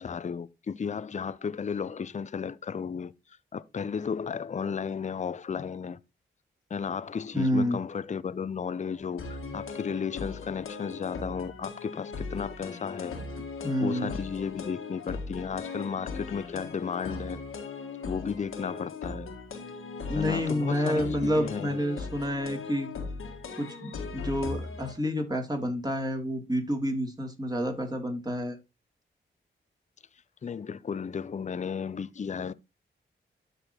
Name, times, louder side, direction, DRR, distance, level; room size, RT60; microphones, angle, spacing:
voice 1, 0.0-3.1 3.5-6.0 6.7-13.2 13.8-17.4 18.0-19.3 20.1-21.8 30.4-32.5, left 6 dB, 35° left, 0.5 m, -34 dB
voice 2, 7.3-7.8 13.6-14.1 20.1-22.9 23.6-28.6, equal, 20° right, 2.9 m, -29 dB
sound 1, 9.2-24.9, left 4 dB, 80° left, 1.7 m, -39 dB
12.5 x 4.2 x 3.0 m
supercardioid pair, 45°, 21 cm